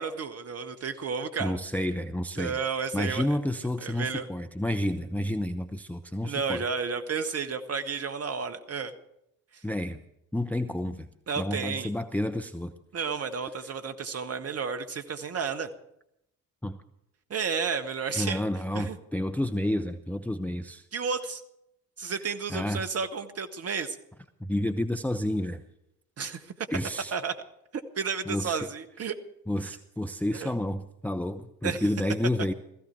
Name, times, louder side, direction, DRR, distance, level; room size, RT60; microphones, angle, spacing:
voice 1, 0.0-1.6 2.4-3.3 3.8-4.3 6.2-8.9 11.3-11.9 12.9-15.7 17.3-18.4 18.7-19.0 20.9-21.4 22.0-24.0 26.2-26.5 27.1-27.3 27.7-29.1 30.3-30.5 31.6-31.9, right 5 dB, 30° right, 7 dB, 1.5 m, -32 dB
voice 2, 1.4-2.6 2.9-6.7 9.6-10.0 10.3-11.1 11.4-12.7 16.6-16.8 18.1-20.8 22.5-22.9 24.4-25.6 26.7-27.2 28.3-28.7 29.5-32.5, left 1 dB, 5° left, 7 dB, 0.8 m, -30 dB
17.0 x 15.0 x 4.6 m, 0.81 s
figure-of-eight pair, 55°, 46 cm